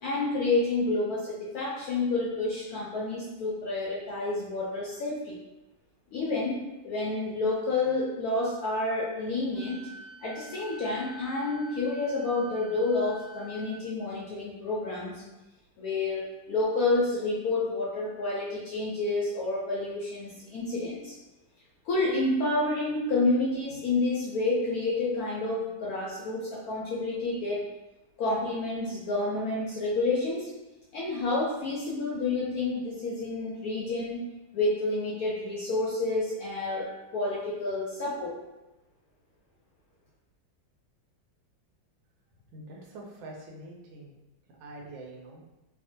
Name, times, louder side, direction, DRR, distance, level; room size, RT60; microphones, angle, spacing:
voice 1, 0.0-5.4 6.1-9.9 10.2-15.2 15.8-21.1 21.8-27.6 28.2-30.5 30.9-36.9 37.1-38.3, left 2 dB, 75° left, -5 dB, 0.8 m, -29 dB
Wind instrument woodwind instrument, 9.5-13.8, equal, 70° right, 1.4 m, -48 dB
voice 2, 42.5-44.1 44.6-45.4, right 2 dB, 85° right, -1 dB, 1.3 m, -45 dB
3.4 x 2.1 x 2.6 m, 1.0 s
omnidirectional pair, 2.0 m